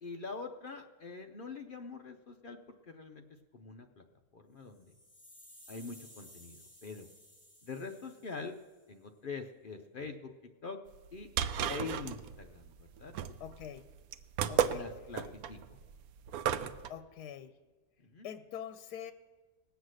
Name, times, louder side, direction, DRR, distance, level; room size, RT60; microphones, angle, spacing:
voice 1, 0.0-3.2 3.5-4.0 4.3-4.9 5.7-7.1 7.6-8.5 8.9-10.3 10.6-10.8 11.1-11.3 11.7-13.1 14.7-15.6 18.0-18.3, left 4 dB, 55° left, 4 dB, 0.6 m, -44 dB
sound 1, 4.6-8.8, equal, 30° left, 5.8 m, -57 dB
sound 2, 10.9-16.9, right 9 dB, 75° right, 1.0 m, -34 dB
voice 2, 13.4-13.8 14.5-14.9 16.9-17.5 18.2-19.1, left 9 dB, 85° left, 10 dB, 1.2 m, -44 dB
19.5 x 8.1 x 6.4 m, 1.3 s
omnidirectional pair, 1.7 m